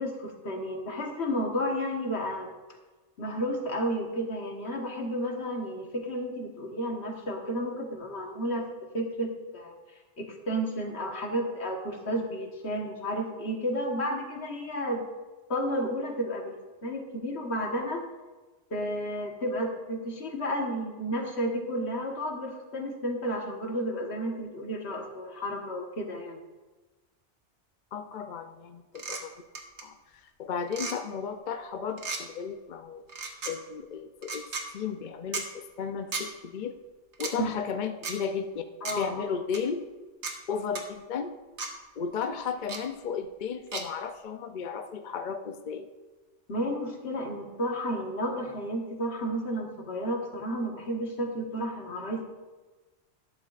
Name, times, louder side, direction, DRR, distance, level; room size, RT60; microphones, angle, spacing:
voice 1, 0.0-2.5 3.2-8.6 8.9-9.7 10.2-15.0 15.5-16.6 16.8-18.0 18.7-26.4 28.2-28.3 37.4-37.5 38.8-39.2 46.5-52.2, equal, 70° left, 2 dB, 1.7 m, -32 dB
voice 2, 27.9-29.3 29.8-33.0 33.4-36.8 37.2-38.6 39.0-39.8 40.5-41.3 42.0-45.9, left 6 dB, 50° left, 7 dB, 0.6 m, -34 dB
sound 1, 28.9-29.2 29.5-29.8 30.7-31.0 32.0-32.2 33.1-33.5 34.2-34.6 35.3-35.5 36.1-36.3 37.1-37.3 38.0-38.2 38.8-39.0 39.5-39.6 40.2-40.3 40.7-40.8 41.6-41.7 42.7-42.8 43.7-43.8, right 4 dB, 80° right, 1.4 m, -34 dB
12.0 x 11.5 x 2.5 m, 1.2 s
omnidirectional pair, 1.2 m